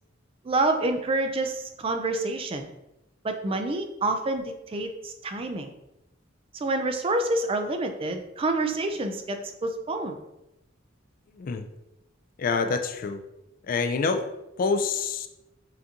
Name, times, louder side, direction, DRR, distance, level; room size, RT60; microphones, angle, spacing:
voice 1, 0.4-2.7 3.2-5.7 6.6-10.2, right 2 dB, 30° right, 6 dB, 0.4 m, -28 dB
voice 2, 11.3-11.7 12.4-13.2 13.7-14.2 14.6-15.3, left 4 dB, 45° left, 8 dB, 0.3 m, -26 dB
5.7 x 2.6 x 2.8 m, 0.91 s
head